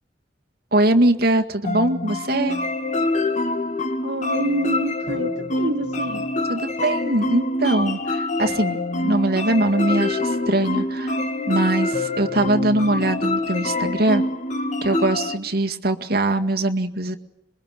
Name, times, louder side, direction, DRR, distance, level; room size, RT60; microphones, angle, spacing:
voice 1, 0.7-2.6 6.5-11.2 11.5-14.2 14.8-17.2, right 1 dB, 60° right, 4 dB, 1.9 m, -22 dB
sound 1, 1.6-15.4, left 2 dB, 45° left, 2.0 m, -25 dB
voice 2, 4.0-6.3, right 2 dB, 85° right, 8 dB, 1.7 m, -27 dB
26.5 x 22.5 x 9.2 m, 0.82 s
head